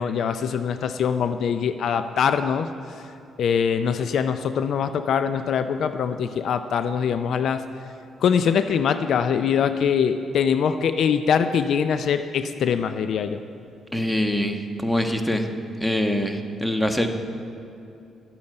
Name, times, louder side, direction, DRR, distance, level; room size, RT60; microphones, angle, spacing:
voice 1, 0.0-2.7 3.4-7.6 8.2-13.4, left 7 dB, 70° left, 10 dB, 0.5 m, -23 dB
voice 2, 13.9-15.5 15.8-17.1, left 1 dB, 5° left, 5 dB, 1.4 m, -24 dB
12.0 x 8.7 x 8.0 m, 2.7 s
supercardioid pair, 60°, 0 cm